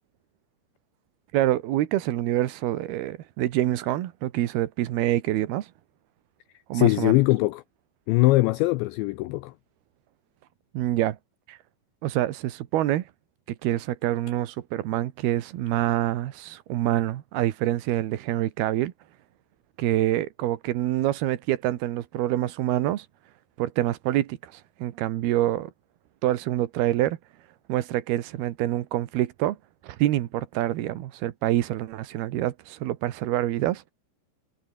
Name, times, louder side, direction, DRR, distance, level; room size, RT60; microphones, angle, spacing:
voice 1, 1.3-5.7 6.7-7.2 10.7-11.2 11.5-11.6 12.0-13.1 13.5-18.9 19.8-23.1 23.6-25.7 26.2-27.2 27.7-29.6 29.8-33.8, right 14 dB, 70° right, 2.7 m, -26 dB
voice 2, 6.7-7.6 8.1-9.5, left 20 dB, 80° left, 2.7 m, -21 dB
omnidirectional pair, 5.7 m